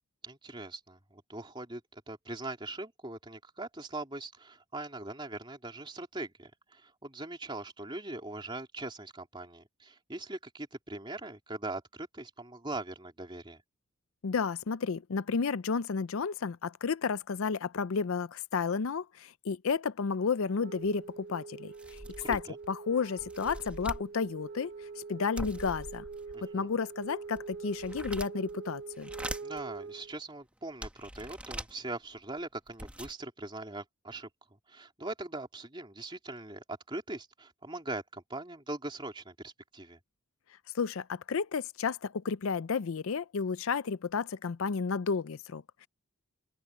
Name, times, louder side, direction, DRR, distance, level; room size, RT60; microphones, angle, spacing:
voice 1, 0.2-13.6 22.2-22.6 26.3-26.7 29.4-34.3 34.7-40.0, right 2 dB, 20° right, 3.1 m, -41 dB
voice 2, 14.2-21.7 22.3-22.4 22.7-24.7 25.0-26.0 26.5-29.1 40.7-45.9, left 5 dB, 70° left, 0.5 m, -32 dB
Wind instrument woodwind instrument, 20.4-30.2, right 4 dB, 50° right, 0.8 m, -44 dB
sound 1, 20.8-20.9 21.4-21.5 21.7-22.7 23.2-24.1 25.4-26.4 27.0-28.5 28.9-29.6 30.2-30.3 30.8-31.7 32.4-32.5 32.7-33.1, right 1 dB, 5° right, 1.5 m, -42 dB
open air
head